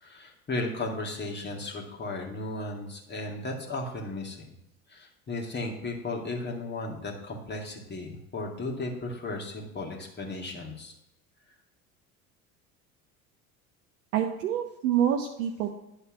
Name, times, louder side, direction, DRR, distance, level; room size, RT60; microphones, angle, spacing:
voice 1, 0.0-4.4 4.9-10.9, left 2 dB, 25° left, 0 dB, 2.1 m, -35 dB
voice 2, 14.1-15.7, right 9 dB, 65° right, 2 dB, 0.9 m, -27 dB
9.8 x 4.4 x 6.0 m, 0.86 s
figure-of-eight pair, 70°, 43 cm